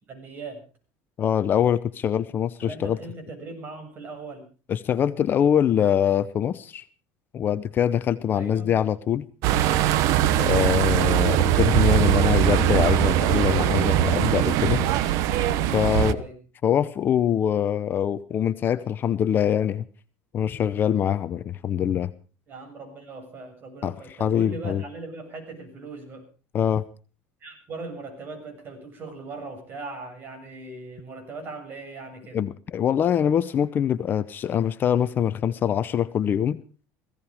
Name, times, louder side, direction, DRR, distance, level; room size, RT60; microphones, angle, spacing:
voice 1, 0.1-0.6 2.6-4.4 8.3-8.7 15.8-16.4 22.5-26.3 27.4-32.4, right 3 dB, 35° right, 5 dB, 7.6 m, -39 dB
voice 2, 1.2-3.0 4.7-6.8 7.3-9.2 10.3-14.8 15.7-16.2 16.6-19.9 20.3-22.1 23.8-24.8 26.5-26.8 32.3-36.6, left 9 dB, 35° left, 12 dB, 0.8 m, -24 dB
sound 1, 9.4-16.1, right 12 dB, 65° right, 1.2 m, -21 dB
18.0 x 16.0 x 4.9 m, 0.38 s
cardioid pair, 140°, 6 cm